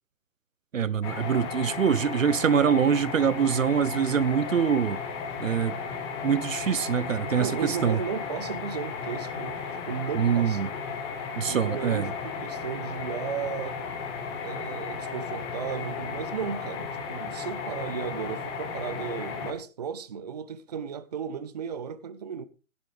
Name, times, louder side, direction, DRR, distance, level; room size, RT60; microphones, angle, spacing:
voice 1, 0.7-5.0 5.4-5.8 6.2-8.0 10.1-10.7 11.4-12.1, right 7 dB, 70° right, 0.8 m, -24 dB
sound 1, 1.0-19.5, left 5 dB, 20° left, 1.6 m, -35 dB
voice 2, 7.4-9.6 9.9-10.7 11.4-13.8 14.4-22.5, right 7 dB, 30° right, 0.6 m, -35 dB
16.0 x 11.0 x 3.3 m
figure-of-eight pair, 145°, 40 cm